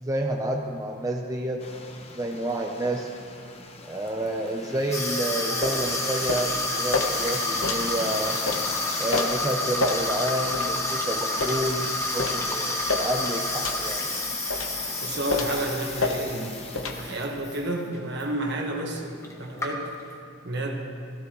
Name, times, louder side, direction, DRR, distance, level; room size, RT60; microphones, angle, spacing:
voice 1, 0.0-1.9 2.2-3.1 3.9-8.4 9.0-14.0, right 1 dB, 15° right, 0 dB, 0.6 m, -29 dB
sound 1, 1.6-17.3, left 4 dB, 30° left, 0.9 m, -40 dB
Water tap faucet / Sink (filling or washing), 4.9-17.6 17.9-18.2 19.0-19.1 19.2-20.1, left 2 dB, 15° left, 1.2 m, -29 dB
sound 2, 5.6-5.8 6.3-6.5 6.9-7.1 7.6-7.8 8.5-8.6 9.1-9.3 9.8-10.0 10.5-10.7 11.4-11.6 12.2-12.4 12.9-13.1 13.6-13.8 14.5-14.8 15.3-15.6 16.0-16.2 16.8-17.0, left 3 dB, 85° left, 1.0 m, -28 dB
voice 2, 15.0-19.9 20.4-20.9, right 1 dB, 55° right, 2 dB, 1.4 m, -31 dB
16.5 x 15.5 x 3.1 m, 2.3 s
head